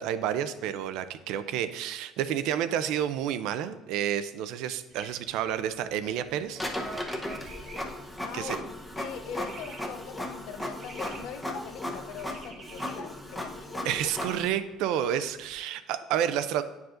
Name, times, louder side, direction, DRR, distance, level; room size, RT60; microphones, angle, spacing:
voice 1, 0.0-6.6 8.3-8.6 13.8-16.6, right 10 dB, 75° right, 12 dB, 0.4 m, -30 dB
mocking bird, 4.9-15.6, right 3 dB, 35° right, 0.9 m, -51 dB
Printer, 6.5-14.5, left 1 dB, 5° left, 0.8 m, -36 dB
voice 2, 8.2-8.6 9.0-13.8, left 7 dB, 75° left, 8 dB, 0.6 m, -41 dB
9.2 x 4.7 x 2.5 m, 1.1 s
cardioid pair, 130°, 0 cm